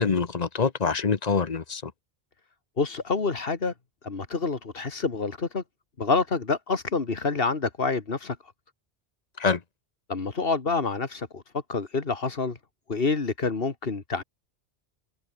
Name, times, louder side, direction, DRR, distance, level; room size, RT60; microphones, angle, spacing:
voice 1, 0.0-1.9 9.4-9.6, left 5 dB, 40° left, 1.1 m, -25 dB
voice 2, 2.8-3.7 4.0-5.6 6.0-8.4 10.1-11.4 11.7-12.6 12.9-14.2, left 4 dB, 65° left, 2.1 m, -27 dB
open air
omnidirectional pair, 1.1 m